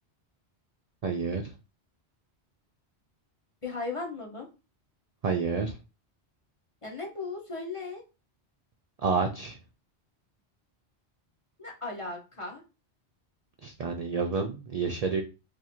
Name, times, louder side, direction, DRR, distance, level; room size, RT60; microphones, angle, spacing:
voice 1, 1.0-1.5 5.2-5.7 9.0-9.6 13.6-15.2, right 5 dB, 60° right, 3 dB, 0.4 m, -29 dB
voice 2, 3.6-4.5 6.8-8.0 11.6-12.6, left 3 dB, 35° left, 0 dB, 0.8 m, -36 dB
2.7 x 2.5 x 4.2 m, 0.30 s
omnidirectional pair, 1.1 m